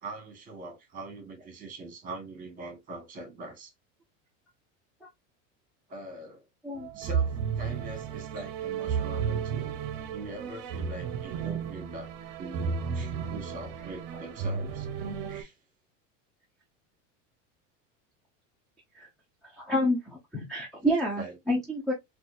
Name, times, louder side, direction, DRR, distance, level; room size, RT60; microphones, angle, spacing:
voice 1, 0.0-3.7 5.9-6.4 6.9-9.8 10.1-12.1 12.4-14.9 15.3-15.6 21.2-21.3, right 2 dB, 20° right, 1.5 m, -42 dB
sound 1, 6.7-15.4, right 6 dB, 40° right, 0.7 m, -33 dB
voice 2, 19.5-21.9, equal, ahead, 0.3 m, -29 dB
4.1 x 2.3 x 2.5 m
supercardioid pair, 150°, 37 cm